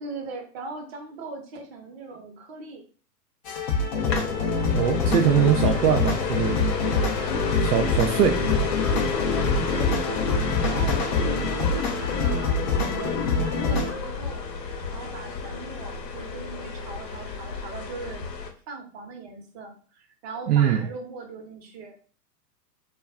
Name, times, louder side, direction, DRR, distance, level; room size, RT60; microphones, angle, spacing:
voice 1, 0.0-2.8 9.7-12.6 12.9-14.5 14.9-18.3 18.7-22.1, right 3 dB, 40° right, 2 dB, 0.8 m, -39 dB
sound 1, 3.5-13.9, left 3 dB, 30° left, 0.4 m, -25 dB
sound 2, 4.0-18.5, left 5 dB, 80° left, 0.8 m, -32 dB
voice 2, 4.7-6.6 7.6-8.4 20.5-20.8, right 9 dB, 70° right, 3 dB, 0.5 m, -22 dB
sound 3, 7.3-14.4, left 6 dB, 50° left, 0.8 m, -38 dB
2.3 x 2.2 x 3.4 m, 0.40 s
figure-of-eight pair, 110°, 49 cm